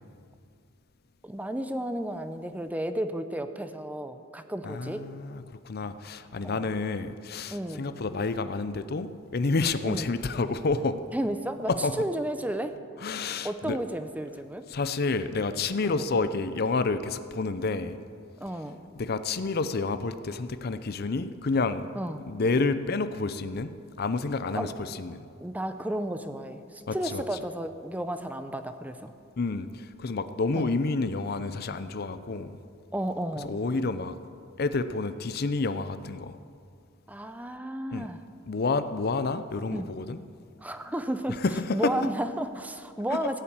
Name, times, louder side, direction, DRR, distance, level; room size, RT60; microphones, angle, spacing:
voice 1, 1.2-5.0 6.4-6.7 7.5-7.9 9.8-10.1 11.1-12.8 13.4-14.6 15.8-16.0 18.4-18.8 21.9-22.2 24.6-24.7 25.4-29.1 30.5-30.8 32.9-33.6 37.1-38.2 39.7-39.9 40.6-41.4 41.7-43.4, right 1 dB, 10° right, 9 dB, 0.6 m, -33 dB
voice 2, 4.6-11.0 11.7-11.9 13.0-13.8 14.7-18.0 18.9-21.9 22.3-25.2 26.9-27.2 29.4-32.5 33.4-34.2 34.6-36.4 37.9-38.1 38.5-40.2 41.4-41.9 43.1-43.3, left 3 dB, 50° left, 12 dB, 0.6 m, -29 dB
16.5 x 7.2 x 8.8 m, 2.3 s
head